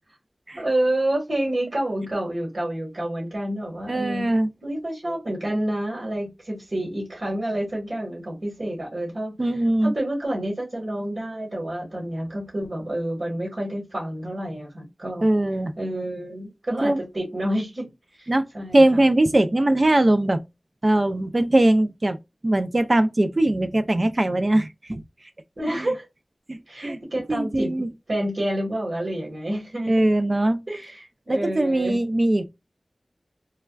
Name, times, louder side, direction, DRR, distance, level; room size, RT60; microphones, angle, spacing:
voice 1, 0.5-4.3 4.6-9.4 9.8-15.3 15.8-17.9 18.2-19.0 25.6-26.1 26.7-27.7 28.1-30.1 30.7-32.0, right 1 dB, 65° right, 1.4 m, -28 dB
voice 2, 3.9-4.5 9.4-9.9 15.2-15.7 16.8-17.0 18.3-18.4 18.7-20.4 20.8-22.2 22.4-25.0 25.7-25.9 26.5-27.0 27.3-27.9 29.9-30.6 31.3-32.5, right 1 dB, 40° right, 0.4 m, -21 dB
3.3 x 2.2 x 2.2 m
wide cardioid pair, 70°, 0 cm